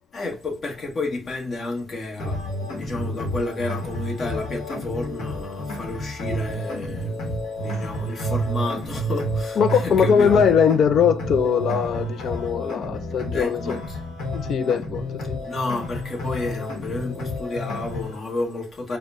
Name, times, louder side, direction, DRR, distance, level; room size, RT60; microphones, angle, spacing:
voice 1, 0.1-7.2 7.6-10.5 13.2-14.0 15.4-19.0, left 2 dB, 45° left, 1.2 m, -31 dB
sound 1, 2.2-18.2, right 1 dB, 85° left, 1.1 m, -30 dB
voice 2, 9.6-13.8 14.3-15.4, left 7 dB, 65° left, 0.4 m, -21 dB
4.9 x 2.2 x 3.5 m
cardioid pair, 90°, 0 cm